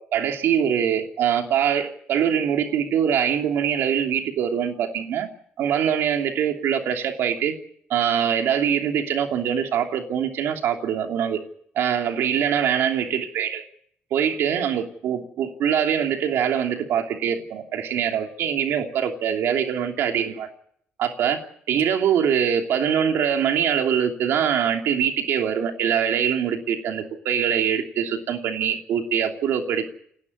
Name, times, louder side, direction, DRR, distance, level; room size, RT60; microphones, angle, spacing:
voice 1, 0.0-5.3 5.6-7.5 7.9-11.4 11.7-13.6 14.1-20.5 21.0-29.9, right 8 dB, 75° right, 3 dB, 3.0 m, -23 dB
29.0 x 12.0 x 9.8 m, 0.66 s
cardioid pair, 140°, 4 cm